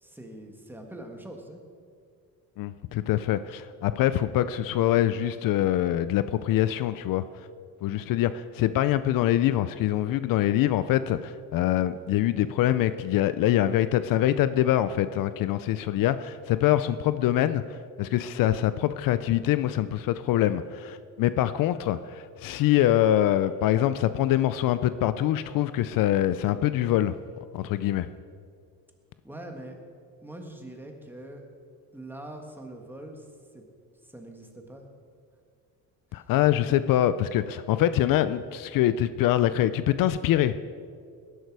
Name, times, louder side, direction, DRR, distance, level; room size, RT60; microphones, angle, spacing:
voice 1, 0.0-1.6 16.0-16.1 29.2-29.8 30.2-31.4 31.9-33.3 33.5-33.6 34.0-34.9 36.1-36.3 36.6-36.7, right 1 dB, 5° right, 3 dB, 1.5 m, -43 dB
voice 2, 2.6-7.2 7.8-27.1 27.5-28.1 36.1-40.6, left 12 dB, 65° left, 13 dB, 0.6 m, -24 dB
19.5 x 11.0 x 4.7 m, 2.2 s
cardioid pair, 150°, 36 cm